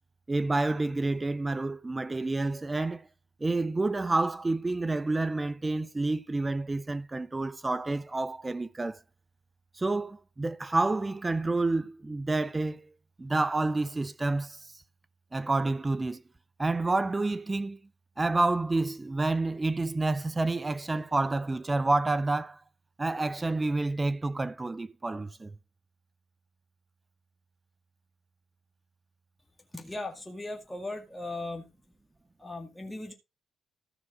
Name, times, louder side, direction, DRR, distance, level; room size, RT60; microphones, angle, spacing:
voice 1, 0.3-3.1 3.4-9.0 9.8-12.9 13.2-14.8 15.3-16.2 16.6-17.8 18.2-22.6 23.0-25.6, right 2 dB, 20° right, 0.6 m, -29 dB
voice 2, 29.7-31.7 32.4-33.1, left 2 dB, 10° left, 2.1 m, -38 dB
14.0 x 6.1 x 3.7 m
cardioid pair, 90°, 0 cm